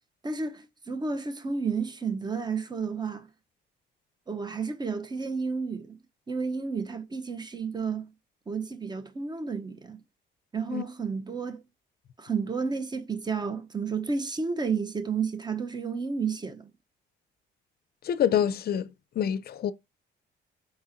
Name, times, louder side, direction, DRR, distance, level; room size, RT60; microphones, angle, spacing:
voice 1, 0.2-3.3 4.3-6.0 6.3-8.1 8.5-10.0 10.5-11.6 12.2-16.7, right 5 dB, 20° right, 0.6 m, -31 dB
voice 2, 18.0-18.9 19.2-19.7, left 9 dB, 55° left, 0.4 m, -26 dB
4.1 x 4.0 x 2.5 m
cardioid pair, 90°, 20 cm